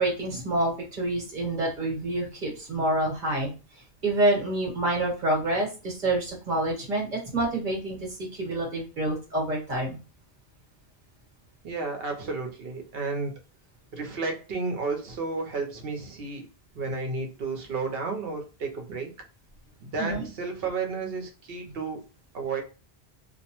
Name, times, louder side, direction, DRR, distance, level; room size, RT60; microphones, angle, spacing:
voice 1, 0.0-3.5 4.0-10.0 20.0-20.2, right 1 dB, 50° right, 1 dB, 1.1 m, -27 dB
voice 2, 11.6-13.3 13.9-16.4 16.7-19.1 19.8-22.0 22.3-22.6, right 4 dB, 70° right, 4 dB, 0.9 m, -32 dB
2.6 x 2.1 x 2.8 m, 0.33 s
omnidirectional pair, 1.0 m